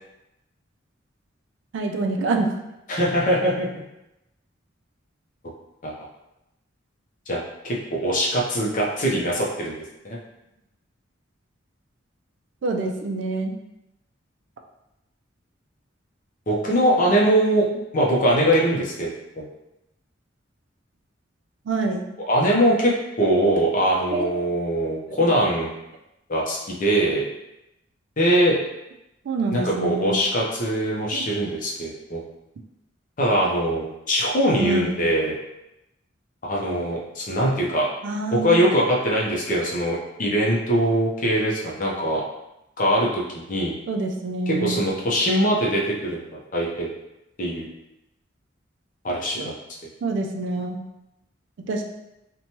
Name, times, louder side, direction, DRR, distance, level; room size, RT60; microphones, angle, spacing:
voice 1, 1.7-2.5 12.6-13.5 21.7-22.1 24.1-24.3 25.1-25.3 29.3-30.2 31.1-31.2 34.6-35.0 38.0-38.7 43.9-44.8 49.4-49.5 50.0-50.8 51.6-51.8, right 3 dB, 65° right, 3 dB, 0.3 m, -26 dB
voice 2, 2.9-3.7 5.8-5.9 7.3-9.7 10.0-10.2 16.5-17.6 17.9-19.1 19.4-19.5 22.3-25.7 26.3-27.2 28.2-28.6 29.5-32.2 33.2-35.3 36.4-37.9 38.3-42.2 42.8-43.8 44.5-46.2 46.5-46.9 47.4-47.7 49.0-49.5, right 1 dB, 40° left, -3 dB, 0.6 m, -22 dB
3.0 x 2.2 x 2.7 m, 0.90 s
head